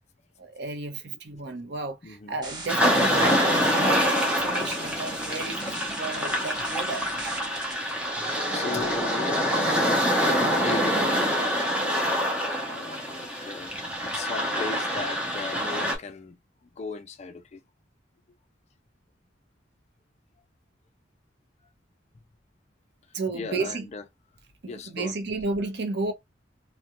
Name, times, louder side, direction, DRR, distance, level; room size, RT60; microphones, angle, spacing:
voice 1, 0.4-7.0 23.1-23.9 24.6-26.1, right 3 dB, 65° right, 0.7 m, -32 dB
voice 2, 2.0-2.3 8.0-11.6 12.7-16.4 16.7-17.6 23.3-24.0 24.7-25.2, left 4 dB, 35° left, 0.4 m, -37 dB
sound 1, 2.4-7.7, right 2 dB, 25° right, 0.9 m, -41 dB
sound 2, 2.7-16.0, equal, 5° right, 0.6 m, -25 dB
2.3 x 2.1 x 2.9 m
head